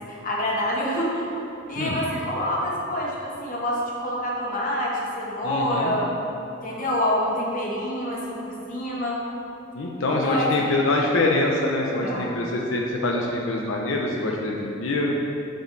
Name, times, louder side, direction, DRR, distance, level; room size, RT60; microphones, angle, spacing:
voice 1, 0.1-1.3 1.7-6.1 6.6-9.2 10.1-10.8 12.0-12.3, left 1 dB, 45° left, -4 dB, 1.4 m, -27 dB
voice 2, 5.4-5.9 9.7-15.1, left 2 dB, 85° left, -1 dB, 0.7 m, -24 dB
7.1 x 6.6 x 4.0 m, 2.9 s
head